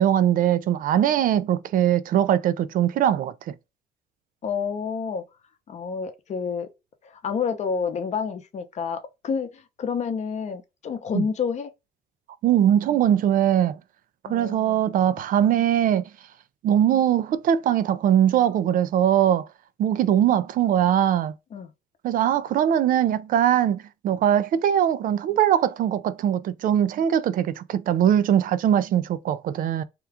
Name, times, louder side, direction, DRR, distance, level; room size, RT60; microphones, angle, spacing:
voice 1, 0.0-3.3 11.1-11.2 12.4-13.8 14.2-16.1 16.6-19.5 19.8-21.3 22.0-29.8, right 10 dB, 55° right, 0.4 m, -21 dB
voice 2, 4.4-5.2 5.7-6.7 7.0-11.7 14.2-14.8 20.1-20.2 21.5-21.7, left 6 dB, 45° left, 0.7 m, -29 dB
2.9 x 2.3 x 3.4 m
cardioid pair, 110°, 17 cm